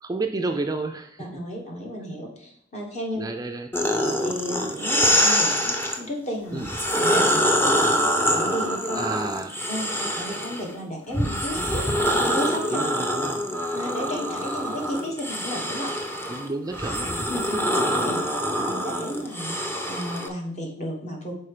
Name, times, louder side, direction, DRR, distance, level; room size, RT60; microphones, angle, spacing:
voice 1, 0.0-1.3 3.2-3.7 6.5-6.7 9.0-9.6 12.7-13.4 16.3-17.1, right 2 dB, 20° right, 5 dB, 0.4 m, -30 dB
voice 2, 1.2-3.3 4.2-6.6 7.0-7.7 8.3-9.0 9.7-11.9 12.2-12.8 13.7-15.9 17.3-17.7 18.0-19.6 19.9-21.3, equal, 40° left, 0 dB, 1.6 m, -33 dB
sound 1, 3.7-6.0 6.6-10.7 11.1-20.3, equal, 10° left, 0.7 m, -25 dB
5.7 x 4.5 x 4.9 m, 0.71 s
head